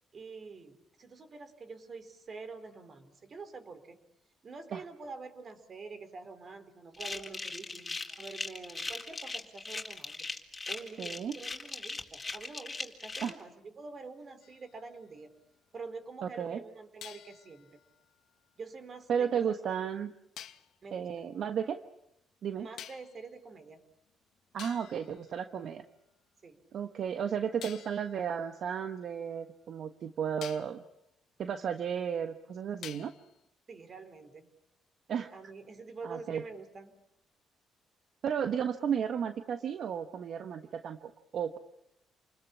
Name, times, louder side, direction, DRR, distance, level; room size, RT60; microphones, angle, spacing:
voice 1, 0.1-4.0 4.4-10.3 10.7-15.3 15.7-17.8 18.6-19.6 20.8-21.1 22.6-23.8 26.4-26.6 33.7-34.5 35.3-37.0, right 4 dB, 45° right, 10 dB, 4.2 m, -46 dB
sound 1, 6.9-13.3, left 3 dB, 20° left, 3.9 m, -39 dB
voice 2, 11.0-11.4 13.2-13.3 16.2-16.6 19.1-20.1 20.9-21.8 22.4-22.7 24.5-25.8 26.7-30.8 31.4-33.1 35.1-35.3 36.0-36.4 38.2-41.6, right 8 dB, 65° right, 8 dB, 1.3 m, -33 dB
sound 2, 14.4-15.8 17.0-19.1 20.4-20.8 22.8-23.3 24.1-24.2 24.6-26.2 27.6-29.8 30.4-30.8 32.8-33.4, left 10 dB, 75° left, 1.4 m, -51 dB
29.0 x 21.0 x 8.6 m, 0.78 s
cardioid pair, 90°, 0 cm